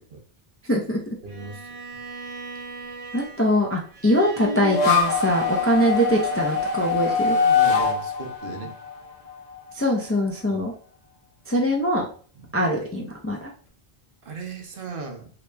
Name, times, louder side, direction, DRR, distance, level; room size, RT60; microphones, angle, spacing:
voice 1, 0.7-1.0 3.1-7.4 9.7-10.7 11.5-12.1 12.5-13.5, equal, 20° left, 0 dB, 0.4 m, -23 dB
voice 2, 1.2-1.7 7.0-8.8 10.5-10.6 12.4-12.6 14.2-15.3, right 4 dB, 65° right, 4 dB, 0.9 m, -37 dB
Bowed string instrument, 1.3-7.5, right 4 dB, 80° right, 1.2 m, -41 dB
sound 1, 4.4-9.6, left 5 dB, 50° left, 0.7 m, -23 dB
3.0 x 2.9 x 3.3 m, 0.43 s
omnidirectional pair, 1.0 m